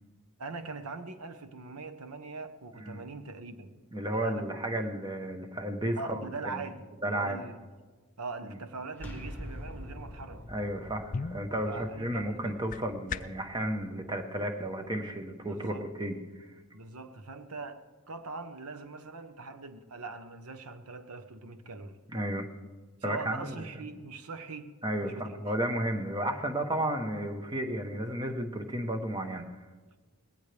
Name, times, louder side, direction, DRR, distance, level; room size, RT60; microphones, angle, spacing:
voice 1, 0.4-3.7 4.2-4.5 6.0-7.6 8.2-10.5 11.6-12.6 15.5-15.9 16.7-22.0 23.0-24.7 25.0-25.4, right 3 dB, 85° right, 1.0 m, -42 dB
voice 2, 3.9-6.6 7.0-7.4 8.4-8.6 10.5-16.5 22.1-22.5 23.0-23.6 24.8-29.5, right 1 dB, 20° right, 1.1 m, -33 dB
sound 1, 9.0-14.7, equal, 10° left, 1.7 m, -46 dB
sound 2, 11.0-13.5, left 5 dB, 35° left, 0.4 m, -40 dB
20.0 x 17.0 x 3.4 m
head